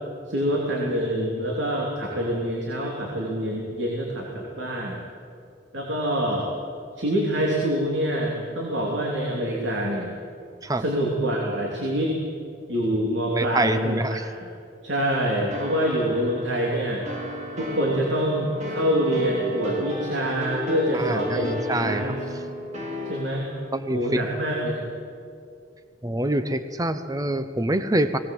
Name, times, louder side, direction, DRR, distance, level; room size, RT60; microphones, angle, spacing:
voice 1, 0.3-5.0 5.7-6.5 7.0-10.1 10.8-12.2 12.7-14.5 14.8-17.1 17.6-21.5 21.8-22.2 23.0-23.5 23.9-24.8, equal, 70° right, -2 dB, 3.0 m, -26 dB
voice 2, 13.3-14.2 20.9-22.1 23.7-24.2 26.0-28.2, right 1 dB, 20° right, 11 dB, 0.7 m, -26 dB
sound 1, 15.5-23.8, equal, 35° right, 2.8 m, -33 dB
19.0 x 19.0 x 7.7 m, 2.4 s
head